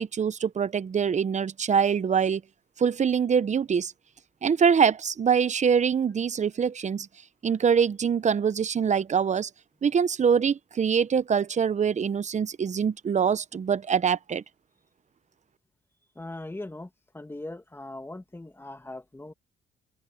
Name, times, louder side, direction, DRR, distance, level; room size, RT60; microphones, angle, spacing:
voice 1, 0.0-2.4 2.8-3.9 4.4-7.1 7.4-9.5 9.8-14.4, right 7 dB, 35° right, 0.8 m, -24 dB
voice 2, 16.2-16.9 17.1-19.3, left 2 dB, 10° left, 2.0 m, -39 dB
cardioid pair, 90°, 20 cm